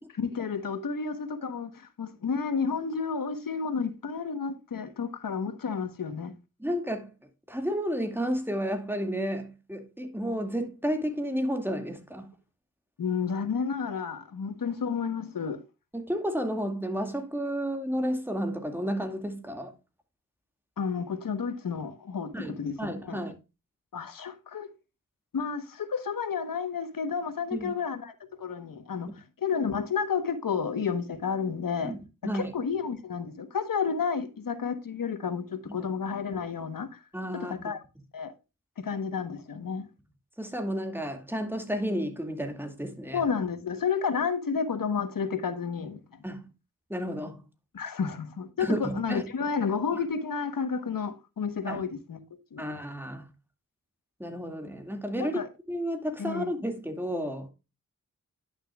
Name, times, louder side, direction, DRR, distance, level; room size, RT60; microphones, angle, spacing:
voice 1, 0.2-6.3 13.0-15.6 20.8-23.2 23.9-24.7 25.3-31.9 32.2-37.0 37.5-37.8 38.1-38.3 38.8-39.9 43.1-46.0 47.7-52.2 52.5-52.6 55.2-55.5 56.2-56.5, left 6 dB, 80° left, 1.2 m, -31 dB
voice 2, 6.6-7.1 7.5-12.3 15.9-19.7 22.3-23.3 27.5-27.7 31.8-32.5 35.7-35.8 37.1-37.7 40.4-43.2 46.2-46.4 46.9-47.4 48.6-49.2 51.7-51.8 52.6-53.3 54.2-55.4 55.7-57.5, equal, 5° right, 2.2 m, -32 dB
11.0 x 6.5 x 2.4 m
cardioid pair, 50°, 33 cm